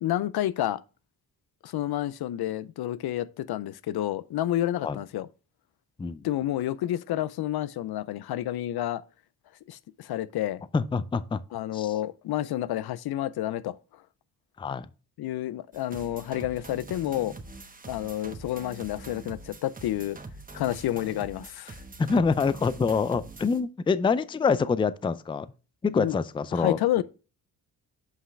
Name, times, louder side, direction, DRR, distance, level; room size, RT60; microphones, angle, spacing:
voice 1, 0.0-0.8 1.6-5.3 6.2-9.0 9.7-10.6 11.5-13.8 15.2-17.3 17.9-20.2 20.5-21.8 26.0-26.2 26.5-27.0, left 13 dB, 75° left, 0.5 m, -29 dB
voice 2, 10.7-11.4 11.7-11.9 14.6-14.9 22.0-25.5 25.8-26.8, left 5 dB, 15° left, 0.4 m, -26 dB
sound 1, 15.7-23.6, right 3 dB, 20° right, 1.2 m, -44 dB
7.4 x 5.7 x 3.2 m
cardioid pair, 110°, 39 cm